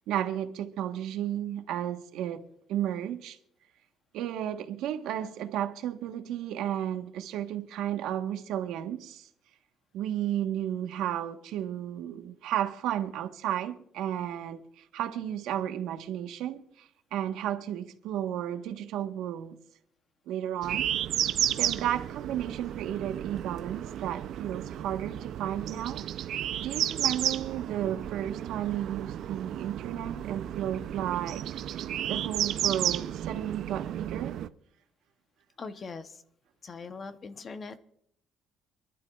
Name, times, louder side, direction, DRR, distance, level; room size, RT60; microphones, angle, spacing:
voice 1, 0.1-2.4 2.7-3.4 4.1-9.3 9.9-19.6 20.3-20.9 21.5-26.0 26.6-31.4 32.0-34.4, right 11 dB, 85° right, 1.1 m, -33 dB
sound 1, 20.6-34.5, right 11 dB, 55° right, 0.4 m, -33 dB
voice 2, 35.6-36.2 36.6-37.8, left 4 dB, 30° left, 0.7 m, -41 dB
26.5 x 11.5 x 2.3 m
cardioid pair, 170°, 0 cm